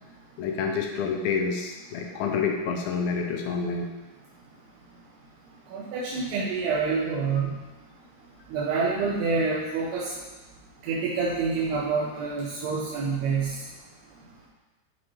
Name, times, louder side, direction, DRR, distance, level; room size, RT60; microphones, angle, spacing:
voice 1, 0.4-3.9, left 5 dB, 80° left, 2 dB, 2.3 m, -28 dB
voice 2, 5.7-7.5 8.5-10.1 10.8-13.6, right 4 dB, 85° right, -6 dB, 2.8 m, -27 dB
7.4 x 4.1 x 3.1 m, 1.2 s
omnidirectional pair, 4.6 m